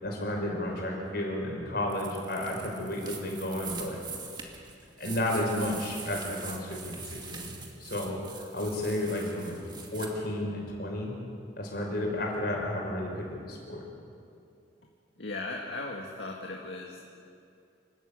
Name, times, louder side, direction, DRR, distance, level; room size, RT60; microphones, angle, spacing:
voice 1, 0.0-4.0 5.0-7.5 7.8-9.6 9.9-11.1 11.6-13.8, left 1 dB, 55° left, 0 dB, 5.7 m, -32 dB
sound 1, 1.9-10.1, right 5 dB, 25° right, 2.2 m, -43 dB
voice 2, 15.2-17.1, left 2 dB, 75° left, -1 dB, 2.0 m, -37 dB
28.0 x 13.0 x 8.7 m, 2.5 s
head